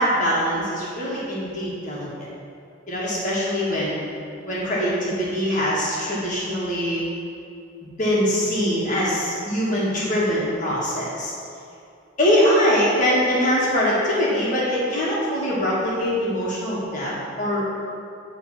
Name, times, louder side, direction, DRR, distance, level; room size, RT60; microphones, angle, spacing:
voice 1, 0.0-2.1 2.9-4.0 4.5-7.1 8.0-11.3 12.2-17.8, equal, 35° left, -7 dB, 1.9 m, -23 dB
9.6 x 3.9 x 5.8 m, 2.5 s
head